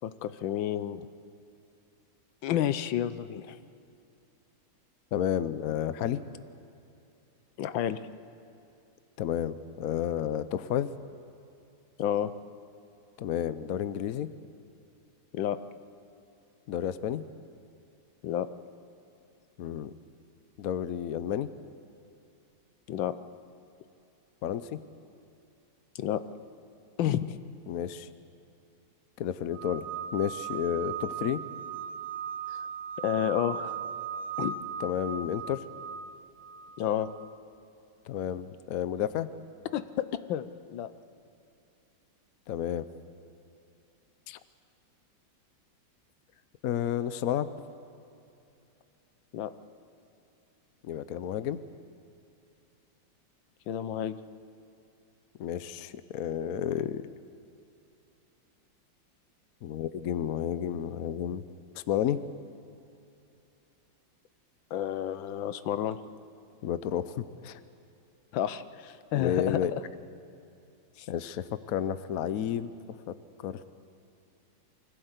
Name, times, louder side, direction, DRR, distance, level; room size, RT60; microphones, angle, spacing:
voice 1, 0.0-1.1 2.4-3.6 7.6-8.0 12.0-12.3 15.3-15.6 18.2-18.5 22.9-23.1 25.9-26.2 27.0-27.4 33.0-33.8 34.4-34.5 36.8-37.1 39.7-40.9 49.3-49.5 53.7-54.2 64.7-66.0 68.3-69.8 71.0-71.1, left 10 dB, 80° left, 13 dB, 1.5 m, -30 dB
voice 2, 5.1-6.2 9.2-10.9 13.2-14.3 16.7-17.2 19.6-19.9 20.6-21.5 24.4-24.8 27.7-28.1 29.2-29.9 30.1-31.4 34.8-35.6 38.1-39.3 42.5-42.9 44.3-44.4 46.6-47.5 50.8-51.6 55.4-57.1 59.6-61.4 61.7-62.2 66.6-67.6 69.1-69.7 71.1-72.7 73.4-73.7, left 10 dB, 65° left, 13 dB, 0.9 m, -31 dB
sound 1, 29.5-37.3, right 7 dB, 60° right, 0.9 m, -38 dB
24.5 x 16.0 x 8.1 m, 2.7 s
omnidirectional pair, 2.1 m